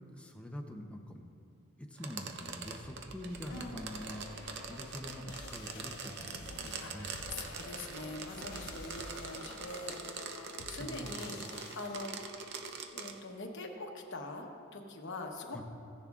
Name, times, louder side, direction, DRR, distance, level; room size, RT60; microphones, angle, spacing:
voice 1, 0.1-1.3 1.8-4.3 4.7-7.2 10.8-11.5 15.5-15.6, equal, 5° left, 2 dB, 0.7 m, -45 dB
sound 1, 2.0-13.2, right 5 dB, 50° right, 0.7 m, -44 dB
sound 2, 2.2-9.6, right 1 dB, 70° right, 2.2 m, -53 dB
sound 3, 3.4-12.7, left 4 dB, 70° left, 0.5 m, -51 dB
voice 2, 6.8-10.0 10.7-12.4 12.9-15.6, left 2 dB, 55° left, 2 dB, 1.0 m, -43 dB
16.0 x 10.5 x 2.4 m, 2.6 s
head